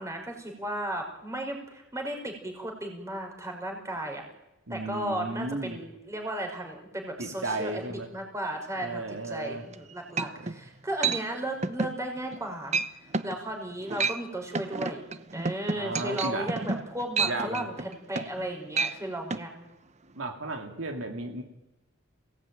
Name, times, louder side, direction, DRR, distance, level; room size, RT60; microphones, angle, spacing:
voice 1, 0.0-4.2 4.7-12.8 13.2-15.0 15.3-19.7, right 1 dB, 15° right, 3 dB, 4.9 m, -35 dB
voice 2, 4.7-5.8 7.2-8.1 8.8-9.6 10.4-10.5 15.7-16.5 17.2-17.7 20.2-21.4, right 2 dB, 75° right, 4 dB, 2.6 m, -34 dB
sound 1, 9.7-9.8 10.2-10.6 11.0-11.2 11.6-12.0 12.3-12.5 12.7-12.9 13.1-13.4 13.8-14.2 14.5-18.4 18.7-18.9 19.3-19.4, right 4 dB, 35° right, 0.9 m, -29 dB
28.0 x 18.0 x 9.1 m, 0.99 s
head